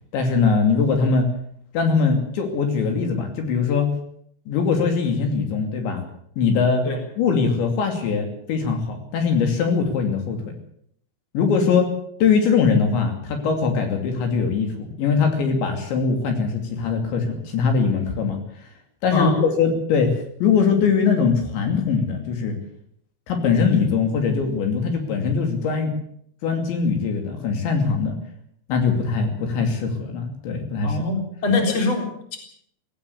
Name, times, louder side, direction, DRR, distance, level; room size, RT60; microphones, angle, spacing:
voice 1, 0.1-1.3 1.7-3.9 4.5-6.0 6.4-6.8 7.2-10.4 11.3-11.9 12.2-18.4 19.0-20.1 20.4-22.6 23.3-25.9 26.4-28.2 28.7-31.0, left 5 dB, 70° left, 4 dB, 5.0 m, -21 dB
voice 2, 30.8-32.4, left 3 dB, 25° left, 3 dB, 4.1 m, -23 dB
18.0 x 17.5 x 8.3 m, 0.66 s
omnidirectional pair, 5.4 m